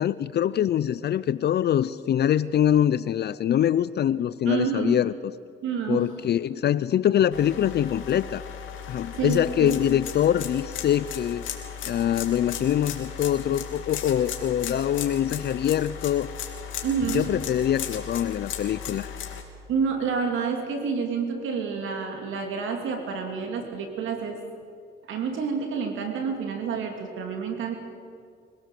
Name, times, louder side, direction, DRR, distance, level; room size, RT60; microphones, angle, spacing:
voice 1, 0.0-5.1 5.9-8.4 8.9-11.5 11.8-16.3 17.1-19.1, left 10 dB, 55° left, 16 dB, 0.6 m, -24 dB
voice 2, 4.5-5.0 5.6-6.1 6.5-6.6 9.1-9.8 16.8-17.3 19.7-24.4 25.1-27.7, right 6 dB, 80° right, 4 dB, 3.2 m, -28 dB
sound 1, 7.3-19.4, left 8 dB, 80° left, 2.7 m, -36 dB
24.0 x 17.5 x 7.7 m, 2.2 s
cardioid pair, 90°, 20 cm